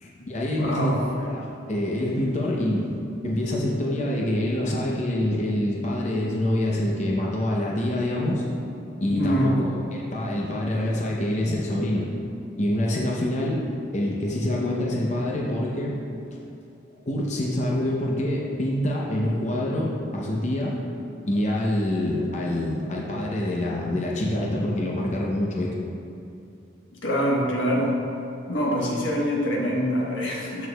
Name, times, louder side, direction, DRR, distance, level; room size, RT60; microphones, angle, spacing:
voice 1, 0.0-3.0 3.2-8.5 9.0-12.1 12.6-13.6 13.9-16.0 17.1-20.8 21.3-25.7, left 1 dB, 35° left, -3 dB, 0.7 m, -26 dB
voice 2, 0.6-1.0 9.1-9.6 26.9-27.9 28.5-30.7, equal, 75° left, -3 dB, 1.2 m, -24 dB
12.5 x 4.6 x 2.3 m, 2.7 s
head